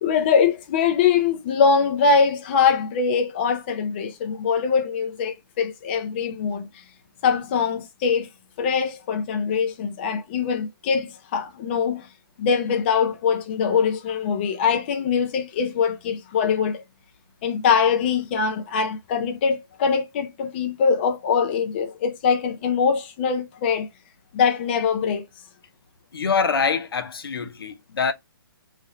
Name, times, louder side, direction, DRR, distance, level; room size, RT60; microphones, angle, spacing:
voice 1, 0.0-6.8 7.2-8.3 8.6-12.1 12.4-16.8 17.4-23.9 24.3-25.3, left 6 dB, 25° left, 0.5 m, -22 dB
voice 2, 26.1-28.1, left 5 dB, 80° left, 0.8 m, -24 dB
3.1 x 2.6 x 3.7 m
hypercardioid pair, 165°, 12 cm